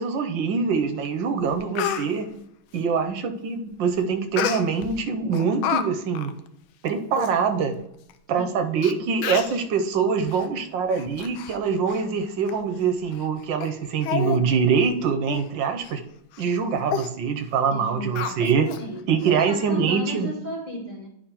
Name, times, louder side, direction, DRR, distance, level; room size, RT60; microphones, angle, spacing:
voice 1, 0.0-2.3 2.7-6.3 6.8-7.8 8.3-16.0 16.4-18.7 19.1-20.3, right 6 dB, 75° right, 6 dB, 1.3 m, -24 dB
Speech, 1.0-1.1 1.5-2.1 4.4-4.9 5.3-5.8 6.1-6.3 6.9-7.0 7.2-7.3 8.1-8.2 8.8-8.9 9.2-9.6 10.3-10.5 10.9-11.6 11.9-12.0 12.5-12.6 13.1-13.3 13.6-13.7 14.0-14.4 14.7-14.9 15.3-15.5 15.8-15.9 16.3-16.5 16.9-17.1 18.2-18.8 19.2-19.3, left 8 dB, 90° left, 1.4 m, -29 dB
voice 2, 17.7-18.5 18.8-21.1, equal, 30° left, -4 dB, 1.0 m, -34 dB
10.5 x 5.1 x 2.9 m, 0.76 s
omnidirectional pair, 2.2 m